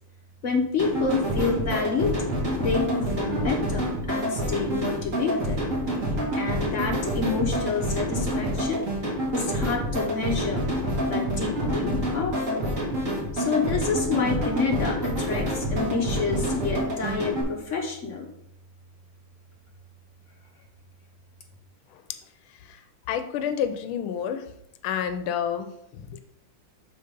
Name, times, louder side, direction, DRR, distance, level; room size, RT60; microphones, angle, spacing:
voice 1, 0.4-2.2 2.6-5.6 6.3-8.8 9.3-10.7 11.1-12.7 13.3-18.3, left 4 dB, 55° left, 2 dB, 0.8 m, -28 dB
sound 1, 0.8-17.4, equal, 40° right, 1.9 m, -27 dB
voice 2, 23.1-24.5 24.8-26.2, left 8 dB, 90° left, 10 dB, 1.4 m, -30 dB
6.7 x 4.1 x 5.1 m, 0.79 s
omnidirectional pair, 2.2 m